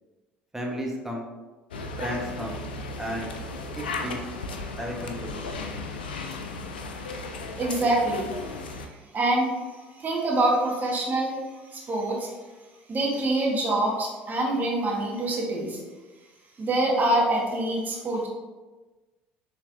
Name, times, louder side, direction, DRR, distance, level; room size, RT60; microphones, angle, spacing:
voice 1, 0.5-1.3 2.0-2.6 3.0-3.3 3.7-4.2 4.8-5.5, equal, 10° right, -1 dB, 1.2 m, -33 dB
sound 1, 1.7-8.9, left 3 dB, 90° left, 0.4 m, -35 dB
voice 2, 7.6-8.3 9.1-9.6 10.0-11.4 11.7-12.3 12.9-15.8 16.6-18.3, right 1 dB, 35° right, -2 dB, 1.4 m, -25 dB
5.8 x 3.3 x 2.6 m, 1.2 s
hypercardioid pair, 65°, 5 cm